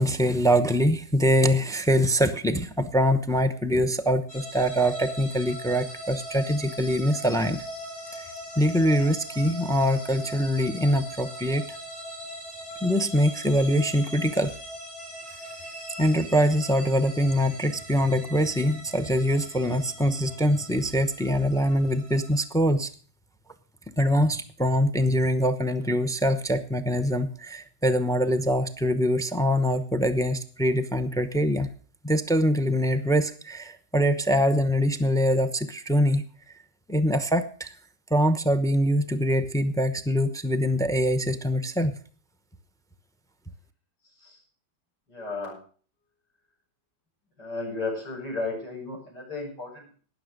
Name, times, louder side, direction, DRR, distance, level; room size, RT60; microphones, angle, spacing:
voice 1, 0.0-7.6 8.1-8.3 8.6-11.6 12.8-14.5 16.0-22.9 24.0-31.7 32.0-36.2 36.9-37.7 38.1-41.9, equal, 5° left, 11 dB, 0.4 m, -24 dB
sound 1, 4.3-22.4, equal, 55° left, 7.5 m, -40 dB
voice 2, 45.1-45.6 47.4-49.9, left 3 dB, 70° left, -1 dB, 8.3 m, -34 dB
18.5 x 6.8 x 6.6 m, 0.42 s
omnidirectional pair, 1.9 m